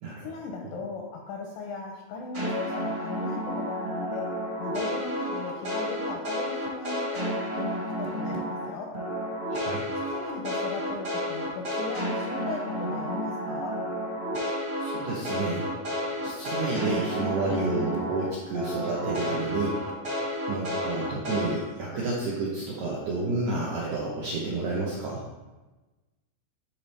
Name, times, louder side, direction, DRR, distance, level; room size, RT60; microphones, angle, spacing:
voice 1, 0.2-4.3 4.6-8.9 10.1-13.8, left 4 dB, 80° left, 0 dB, 2.0 m, -37 dB
sound 1, 2.3-8.6 8.9-18.2 18.5-21.5, equal, 30° right, 0.8 m, -31 dB
voice 2, 9.5-9.8 14.8-15.7 16.2-19.8 20.5-25.2, right 3 dB, 85° right, -5 dB, 1.7 m, -30 dB
11.5 x 4.2 x 3.4 m, 1.1 s
omnidirectional pair, 4.9 m